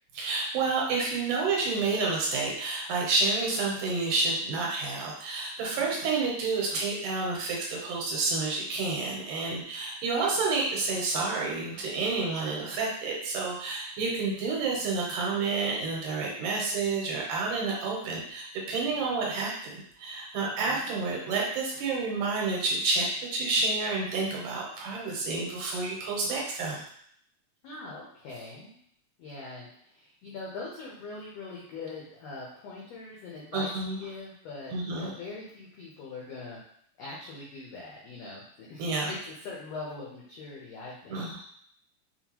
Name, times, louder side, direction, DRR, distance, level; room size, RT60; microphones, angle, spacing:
voice 1, 0.1-26.8 33.5-34.0 34.7-35.1 38.8-39.1 41.1-41.4, right 3 dB, 75° right, -3 dB, 2.2 m, -29 dB
voice 2, 5.6-6.0 14.0-14.2 20.4-20.9 27.6-28.7 29.2-33.7 34.0-36.6 37.0-41.2, left 3 dB, 90° left, -5 dB, 1.4 m, -42 dB
5.7 x 2.3 x 2.9 m, 0.66 s
omnidirectional pair, 4.0 m